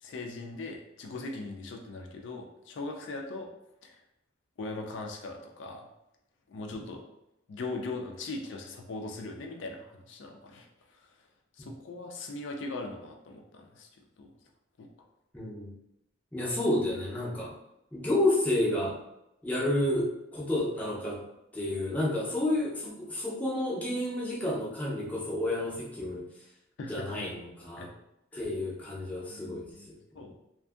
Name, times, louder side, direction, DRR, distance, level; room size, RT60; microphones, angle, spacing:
voice 1, 0.0-3.5 3.8-4.0 4.6-5.9 6.5-7.0 7.5-11.0 11.6-13.9 14.2-14.3 14.8-14.9 26.8-27.3 27.8-27.9 28.3-28.4 29.3-30.3, left 2 dB, 75° left, 2 dB, 0.4 m, -40 dB
voice 2, 15.3-15.7 16.3-17.5 17.9-19.0 19.4-21.2 21.5-26.3 26.9-27.9 28.3-29.7, left 1 dB, 10° left, -6 dB, 0.5 m, -30 dB
2.6 x 2.5 x 2.3 m, 0.86 s
head